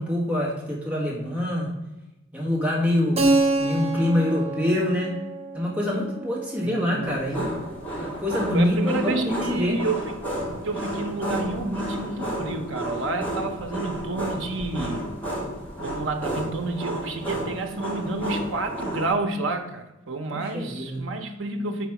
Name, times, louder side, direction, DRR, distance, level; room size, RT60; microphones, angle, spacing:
voice 1, 0.0-1.7 2.3-3.2 3.6-5.2 5.5-7.5 8.0-9.8 20.3-21.0, left 1 dB, 5° right, 1.6 m, -25 dB
Keyboard (musical), 3.2-7.7, right 2 dB, 30° right, 0.7 m, -27 dB
voice 2, 6.6-7.5 8.5-10.1 10.6-15.1 15.8-21.9, right 2 dB, 65° right, 0.8 m, -30 dB
sound 1, 7.0-19.1, right 1 dB, 10° left, 1.6 m, -32 dB
4.8 x 4.0 x 5.8 m
head